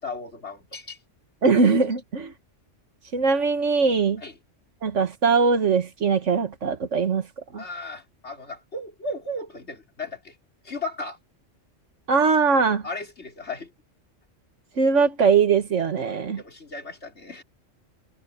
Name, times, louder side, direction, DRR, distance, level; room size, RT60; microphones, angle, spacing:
voice 1, 0.0-1.0 4.2-4.3 7.6-10.3 10.6-11.2 12.8-13.7 16.4-17.4, left 2 dB, 60° left, 4.6 m, -35 dB
voice 2, 1.4-2.3 3.1-4.2 4.8-7.3 7.5-7.6 12.1-12.8 14.8-16.4, right 5 dB, 70° right, 1.8 m, -21 dB
omnidirectional pair, 1.3 m